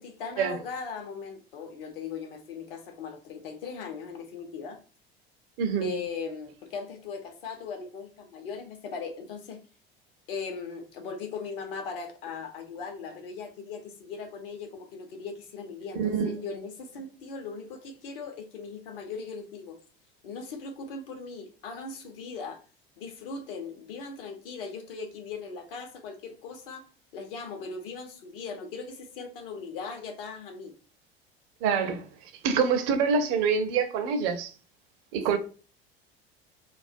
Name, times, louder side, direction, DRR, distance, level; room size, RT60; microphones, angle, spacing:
voice 1, 0.0-4.8 5.8-9.6 10.3-19.8 20.2-22.6 23.0-26.8 27.1-30.7, left 5 dB, 65° left, 0.7 m, -39 dB
voice 2, 5.6-5.9 16.0-16.4 31.6-32.1 32.4-34.5 35.1-35.4, right 6 dB, 50° right, 0.5 m, -26 dB
2.3 x 2.1 x 2.5 m
figure-of-eight pair, 70°, 31 cm